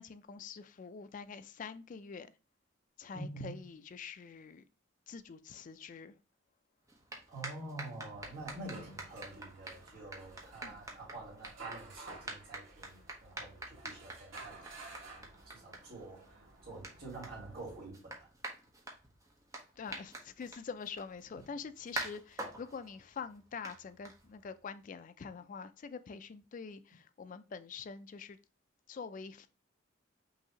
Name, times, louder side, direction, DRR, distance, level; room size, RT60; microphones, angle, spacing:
voice 1, 0.0-2.3 3.0-4.6 5.1-6.1 10.6-10.8 19.8-28.4 28.9-29.5, left 5 dB, 40° left, 0.3 m, -45 dB
voice 2, 3.1-3.6 7.3-14.7 15.2-18.3 21.3-21.4, right 2 dB, 50° right, 1.8 m, -47 dB
sound 1, 6.8-24.6, right 2 dB, 15° right, 0.8 m, -48 dB
sound 2, 8.1-17.9, right 3 dB, 85° right, 1.5 m, -53 dB
5.7 x 2.7 x 2.8 m
head